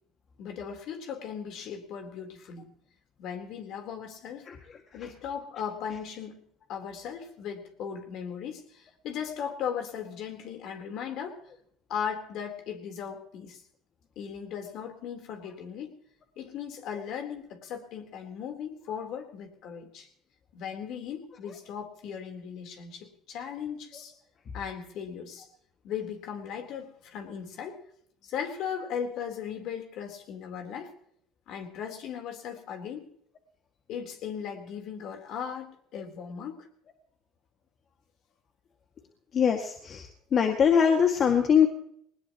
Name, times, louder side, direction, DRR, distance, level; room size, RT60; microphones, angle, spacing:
voice 1, 0.4-2.7 3.2-4.5 4.9-6.4 6.7-11.4 11.9-13.6 14.2-15.9 16.4-20.1 20.5-24.1 24.5-25.5 25.8-27.8 28.2-30.9 31.5-33.0 33.9-36.7, left 7 dB, 65° left, 4 dB, 3.9 m, -37 dB
voice 2, 39.3-40.1 40.3-41.7, left 7 dB, 45° left, 3 dB, 2.1 m, -22 dB
21.0 x 19.5 x 3.1 m, 0.69 s
supercardioid pair, 85°, 0 cm